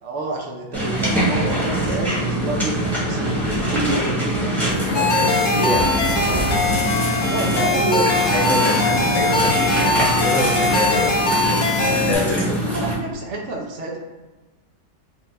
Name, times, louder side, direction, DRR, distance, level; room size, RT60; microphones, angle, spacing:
voice 1, 0.0-4.3 7.2-8.2 12.6-14.0, right 2 dB, 75° right, 0 dB, 0.6 m, -28 dB
sound 1, 0.7-12.9, right 1 dB, ahead, 0.8 m, -23 dB
voice 2, 4.6-6.0 8.3-12.6, left 2 dB, 80° left, -1 dB, 1.4 m, -26 dB
sound 2, 4.9-12.1, left 3 dB, 65° left, 1.2 m, -21 dB
5.0 x 2.2 x 3.2 m, 1.2 s
omnidirectional pair, 1.9 m